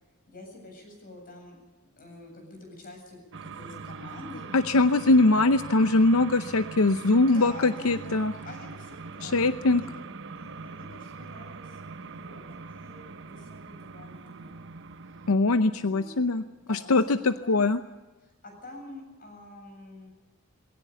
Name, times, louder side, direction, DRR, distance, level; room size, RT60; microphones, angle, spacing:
voice 1, 0.3-1.6 2.0-4.8 7.1-10.0 10.3-14.6 15.7-17.8 18.2-20.1, left 2 dB, 45° left, 3 dB, 7.9 m, -47 dB
sound 1, 3.3-15.4, right 4 dB, 60° right, 0.9 m, -42 dB
voice 2, 4.5-8.3 9.2-9.8 15.3-16.4 16.7-17.8, left 2 dB, 90° left, 11 dB, 0.7 m, -22 dB
20.5 x 17.5 x 8.3 m, 1.1 s
head